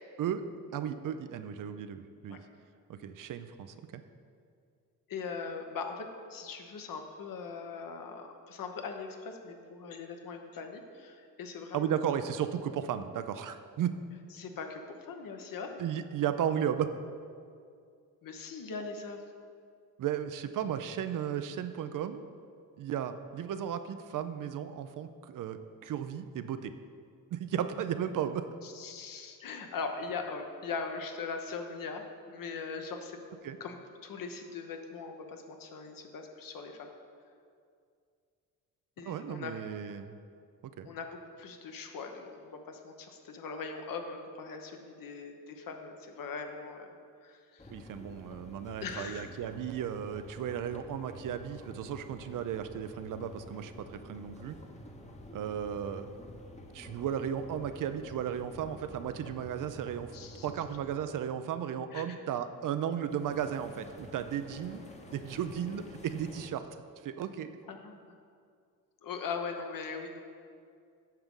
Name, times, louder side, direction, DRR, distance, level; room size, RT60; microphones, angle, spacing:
voice 1, 0.7-2.4 2.9-4.0 11.7-13.9 15.8-16.9 20.0-22.2 22.8-26.7 27.3-28.5 33.4-33.6 39.0-40.2 40.8-40.9 47.7-54.6 55.3-56.1 56.7-60.1 60.4-64.8 65.1-66.7 67.0-67.6, right 9 dB, 50° right, 10 dB, 0.5 m, -35 dB
voice 2, 5.1-6.0 6.3-12.1 14.3-15.8 18.2-19.3 28.6-36.9 39.0-39.5 40.8-46.9 47.2-47.7 48.8-49.2 60.1-60.5 61.9-62.0 67.7-68.0 69.0-70.2, left 5 dB, 55° left, 4 dB, 1.0 m, -40 dB
sound 1, 47.6-61.2 63.0-66.5, left 1 dB, 15° left, 0.9 m, -49 dB
8.9 x 5.9 x 3.7 m, 2.3 s
supercardioid pair, 60°, 40 cm